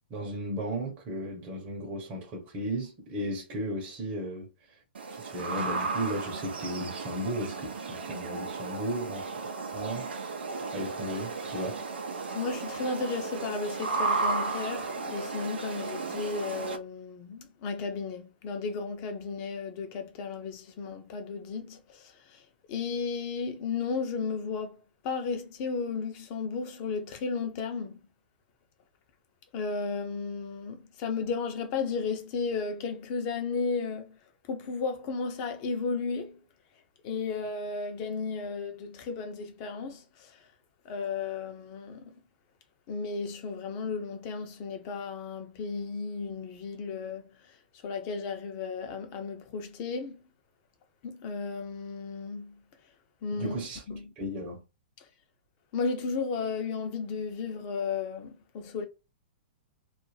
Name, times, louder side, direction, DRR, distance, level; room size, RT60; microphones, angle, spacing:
voice 1, 0.1-4.8 5.1-9.5 9.7-10.4 10.7-11.8 53.3-53.8 54.2-54.6, right 1 dB, 30° right, 0.9 m, -35 dB
sound 1, 4.9-16.8, right 3 dB, 85° right, 0.6 m, -34 dB
voice 2, 12.3-28.0 29.5-34.2 34.5-36.4 37.0-40.5 40.8-42.1 42.9-50.2 51.0-52.6 53.2-53.6 53.9-54.1 55.7-58.8, left 4 dB, 40° left, 0.7 m, -34 dB
2.5 x 2.1 x 3.1 m
hypercardioid pair, 130°, 6 cm